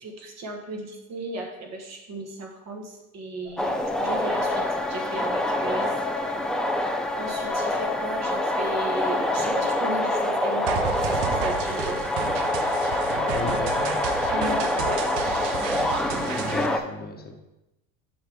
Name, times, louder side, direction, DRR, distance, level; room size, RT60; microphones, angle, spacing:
voice 1, 0.0-6.5 7.1-10.8 11.1-12.0 14.3-15.1, right 2 dB, 40° right, 1 dB, 1.3 m, -35 dB
sound 1, 3.5-10.4, left 12 dB, 65° left, 0.7 m, -39 dB
sound 2, 3.6-16.8, left 1 dB, ahead, 0.4 m, -26 dB
sound 3, 10.7-16.7, right 8 dB, 65° right, 0.8 m, -33 dB
voice 2, 13.3-14.0 16.2-17.3, left 3 dB, 25° left, 3 dB, 1.1 m, -34 dB
7.7 x 5.0 x 3.5 m, 0.95 s
hypercardioid pair, 85°, 39 cm